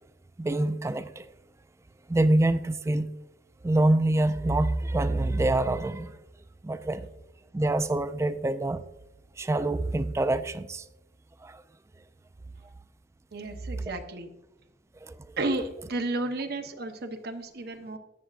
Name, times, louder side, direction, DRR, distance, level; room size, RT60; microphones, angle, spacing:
voice 1, 0.4-1.3 2.1-3.1 3.6-6.1 6.6-7.1 7.5-8.8 9.4-10.8 11.4-11.6 15.0-15.2, right 2 dB, 15° right, 0.3 m, -25 dB
voice 2, 13.3-14.3 15.4-18.0, right 2 dB, 60° right, 0.9 m, -32 dB
13.5 x 7.6 x 2.4 m
head